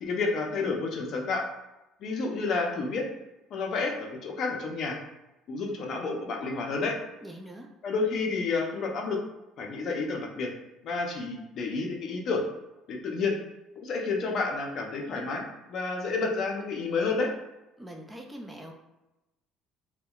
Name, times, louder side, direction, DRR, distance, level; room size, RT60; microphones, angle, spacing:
voice 1, 0.0-1.4 2.0-3.0 3.5-5.0 5.5-7.0 7.8-9.2 9.6-10.5 10.8-12.4 12.9-13.4 13.8-15.4 15.7-17.3, left 4 dB, 55° left, 1 dB, 0.5 m, -30 dB
voice 2, 7.2-7.7 17.8-18.7, right 1 dB, 10° right, 1 dB, 0.3 m, -43 dB
2.6 x 2.1 x 2.3 m, 0.98 s
cardioid pair, 105°, 0 cm